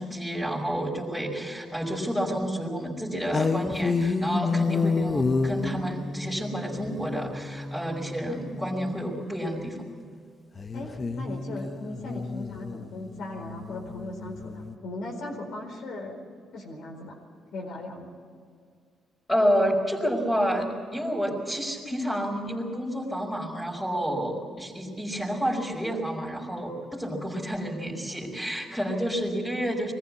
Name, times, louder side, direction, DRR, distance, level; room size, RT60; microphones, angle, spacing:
voice 1, 0.0-9.8 19.3-29.9, equal, 10° left, -7 dB, 4.8 m, -29 dB
sound 1, 3.3-9.0 10.6-14.8, left 4 dB, 30° left, 1.0 m, -30 dB
voice 2, 10.7-16.1 16.5-17.2 17.5-18.1, left 2 dB, 75° left, 0 dB, 4.5 m, -38 dB
21.5 x 15.0 x 8.5 m, 2.2 s
cardioid pair, 90°, 0 cm